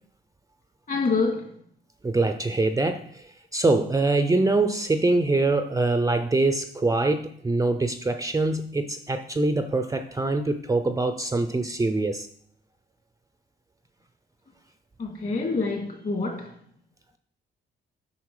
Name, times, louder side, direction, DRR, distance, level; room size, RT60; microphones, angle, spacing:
voice 1, 0.9-1.5 15.0-16.6, left 4 dB, 45° left, 2.4 m, -26 dB
voice 2, 2.0-3.3 3.5-12.3, right 2 dB, 15° right, 0.6 m, -24 dB
8.2 x 5.5 x 4.8 m
cardioid pair, 90°, 20 cm